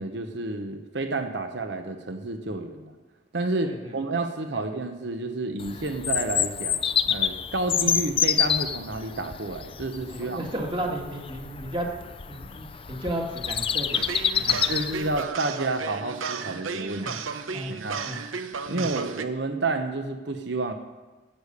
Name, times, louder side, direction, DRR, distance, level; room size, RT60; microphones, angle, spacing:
voice 1, 0.0-3.0 3.3-6.8 7.1-10.4 14.5-17.1 17.7-18.0 18.7-20.7, right 2 dB, 60° right, 7 dB, 1.0 m, -30 dB
voice 2, 3.6-3.9 4.5-4.6 10.1-11.9 12.3-14.6 17.0-17.2 17.5-17.7 18.0-18.2 18.8-18.9, right 1 dB, 25° right, 1 dB, 1.9 m, -33 dB
Bird vocalization bird call bird song, 5.6-15.2, left 8 dB, 30° left, 0.4 m, -28 dB
sound 1, 13.9-19.2, right 5 dB, 90° right, 0.8 m, -34 dB
13.5 x 8.3 x 6.8 m, 1.2 s
head